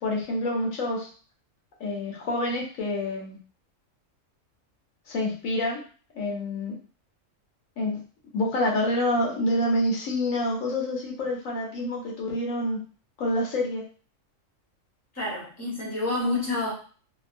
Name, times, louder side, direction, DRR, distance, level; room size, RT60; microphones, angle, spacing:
voice 1, 0.0-1.1 1.8-3.4 5.1-5.8 6.1-6.8 7.8-8.0 8.3-12.8 13.2-13.8, left 1 dB, 90° left, -2 dB, 1.2 m, -27 dB
voice 2, 15.1-16.7, left 2 dB, 15° left, -5 dB, 0.9 m, -28 dB
2.8 x 2.1 x 2.5 m, 0.39 s
omnidirectional pair, 1.3 m